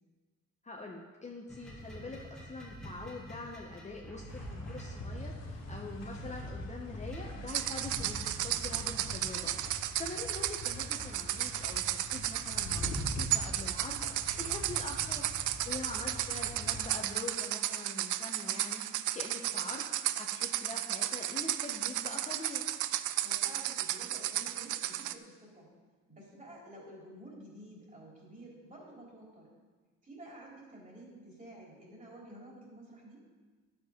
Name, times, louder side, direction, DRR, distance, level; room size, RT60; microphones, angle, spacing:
voice 1, 0.6-15.2 15.7-22.6, left 3 dB, 25° left, -1 dB, 1.0 m, -44 dB
sound 1, 1.5-9.2, right 1 dB, ahead, 1.9 m, -47 dB
sound 2, 4.3-16.9, left 1 dB, 60° left, 1.9 m, -43 dB
sound 3, 7.5-25.1, right 13 dB, 80° right, 0.5 m, -34 dB
voice 2, 9.9-10.3 15.6-15.9 23.2-25.7 26.1-29.5 30.0-33.2, right 1 dB, 25° right, -3 dB, 3.7 m, -51 dB
10.0 x 7.0 x 5.2 m, 1.4 s
cardioid pair, 90°, 30 cm